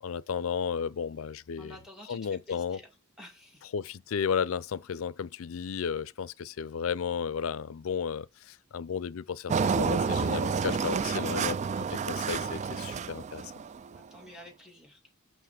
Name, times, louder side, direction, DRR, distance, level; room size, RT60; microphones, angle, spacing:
voice 1, 0.0-1.7 2.1-2.8 3.7-13.5, left 6 dB, 85° left, 0.4 m, -33 dB
voice 2, 1.6-2.9 3.2-3.6 13.9-15.0, left 1 dB, 5° right, 2.4 m, -50 dB
Engine, 9.5-14.0, right 5 dB, 35° right, 0.3 m, -30 dB
6.1 x 5.9 x 4.8 m
head